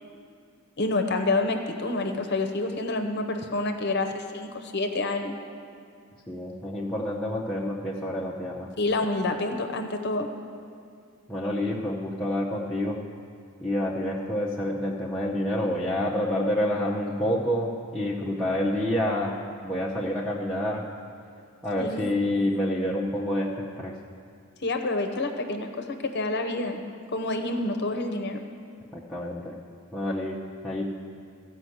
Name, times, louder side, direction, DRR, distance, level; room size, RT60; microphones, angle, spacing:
voice 1, 0.8-5.4 8.8-10.3 21.8-22.3 24.6-26.8 27.1-28.4, left 2 dB, 50° left, 5 dB, 0.8 m, -28 dB
voice 2, 6.3-8.7 11.3-13.0 13.6-19.3 19.6-20.8 21.6-23.9 28.9-29.5 29.9-30.4 30.6-30.9, left 1 dB, 5° left, -7 dB, 0.7 m, -28 dB
14.5 x 5.4 x 7.8 m, 2.3 s
head